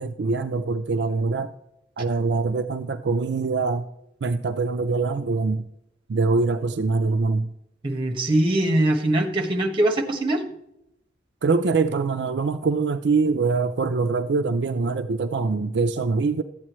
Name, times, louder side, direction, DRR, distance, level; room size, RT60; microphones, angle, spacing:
voice 1, 0.0-1.5 2.0-3.9 4.2-5.6 6.1-7.5 11.4-16.4, right 4 dB, 75° right, 7 dB, 0.4 m, -23 dB
voice 2, 7.8-10.4, right 1 dB, 30° right, 4 dB, 1.3 m, -22 dB
12.0 x 8.6 x 3.1 m, 0.82 s
head